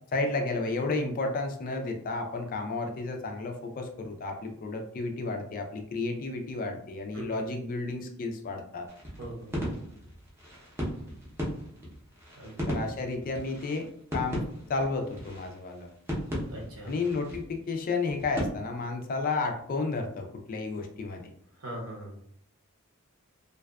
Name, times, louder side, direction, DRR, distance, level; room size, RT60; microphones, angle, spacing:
voice 1, 0.1-8.9 12.7-13.9 14.1-15.9 16.9-21.3, left 3 dB, 40° left, 4 dB, 0.3 m, -32 dB
sound 1, 8.9-18.4, equal, 10° right, 0.6 m, -36 dB
voice 2, 9.2-9.5 12.4-12.7 16.5-16.9 21.5-22.2, right 1 dB, 65° right, -3 dB, 0.9 m, -40 dB
2.5 x 2.2 x 2.2 m, 0.68 s
head